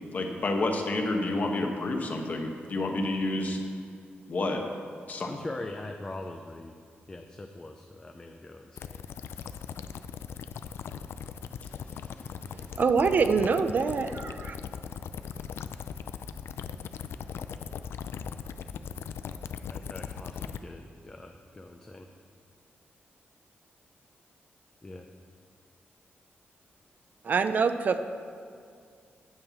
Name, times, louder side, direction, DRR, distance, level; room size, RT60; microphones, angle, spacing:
voice 1, 0.1-3.6 4.3-4.6 5.1-5.3, left 2 dB, 40° left, 3 dB, 1.0 m, -29 dB
voice 2, 5.3-6.7 7.1-9.0 9.3-9.6 19.7-22.1 24.8-25.1, left 2 dB, 20° left, 4 dB, 0.5 m, -42 dB
sound 1, 8.8-20.6, left 7 dB, 90° left, 0.4 m, -39 dB
voice 3, 12.8-14.6 27.2-28.0, right 5 dB, 45° right, 9 dB, 0.4 m, -25 dB
9.8 x 5.6 x 7.0 m, 2.3 s
wide cardioid pair, 160°, 4 cm